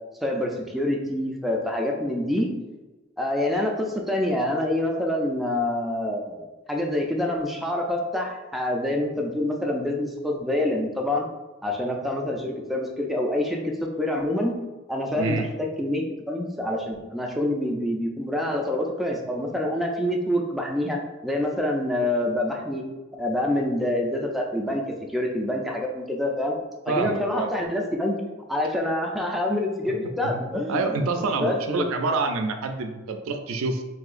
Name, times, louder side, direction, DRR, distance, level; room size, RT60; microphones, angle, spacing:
voice 1, 0.2-2.5 3.2-11.2 11.6-14.5 14.9-22.8 23.2-24.8 25.1-26.6 26.9-28.2 28.5-31.9, left 1 dB, ahead, 0 dB, 0.3 m, -26 dB
voice 2, 15.1-15.5 26.9-27.5 29.8-29.9 30.5-33.8, right 3 dB, 80° right, 5 dB, 0.4 m, -27 dB
3.7 x 2.7 x 2.4 m, 1.2 s
head